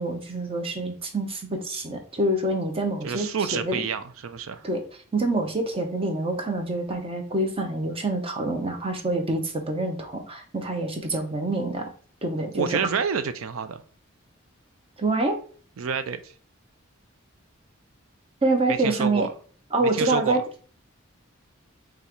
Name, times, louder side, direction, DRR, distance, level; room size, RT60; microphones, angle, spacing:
voice 1, 0.0-3.8 4.6-4.8 5.1-11.9 12.2-12.7 15.0-15.4 18.4-19.3 19.7-20.4, right 2 dB, 30° right, 0.8 m, -26 dB
voice 2, 3.0-4.7 12.5-13.8 15.8-16.3 18.7-19.3 19.8-20.4, right 6 dB, 70° right, 0.5 m, -28 dB
5.5 x 2.4 x 3.0 m
head